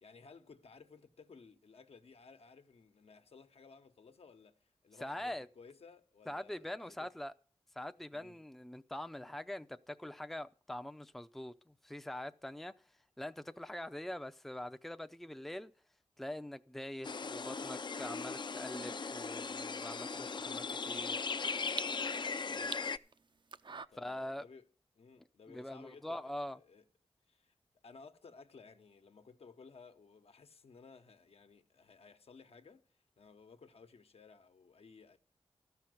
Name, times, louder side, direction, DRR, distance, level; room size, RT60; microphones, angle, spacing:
voice 1, 0.0-7.1 8.1-8.4 22.4-22.8 23.9-24.7 24.9-26.8 27.3-27.5 27.8-35.2, left 4 dB, 75° left, 1.1 m, -58 dB
voice 2, 5.0-5.5 6.3-7.3 7.8-12.7 13.2-15.7 16.2-21.2 24.0-24.4 25.5-26.6, left 1 dB, ahead, 0.5 m, -44 dB
sound 1, 17.0-23.0, left 4 dB, 45° left, 0.5 m, -38 dB
sound 2, 17.7-23.9, right 4 dB, 50° right, 0.6 m, -50 dB
13.5 x 5.9 x 7.7 m
cardioid pair, 60°, 10 cm